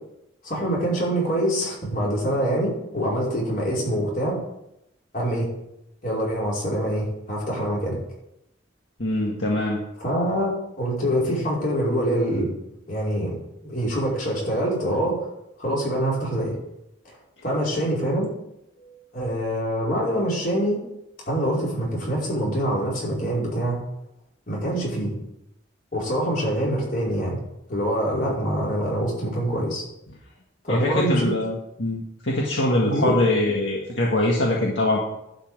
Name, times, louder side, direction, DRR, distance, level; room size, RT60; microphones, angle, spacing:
voice 1, 0.4-4.4 5.1-5.5 6.0-8.0 10.0-10.5 10.8-12.5 12.9-13.3 13.6-15.3 15.6-16.5 17.4-18.3 19.1-20.8 21.3-23.8 24.5-25.1 25.9-27.4 27.7-29.8 30.6-31.3 32.8-33.1, right 1 dB, 45° left, -5 dB, 5.2 m, -25 dB
voice 2, 9.0-9.8 30.7-35.0, left 1 dB, 75° left, -2 dB, 1.8 m, -23 dB
11.5 x 5.6 x 8.1 m, 0.83 s
head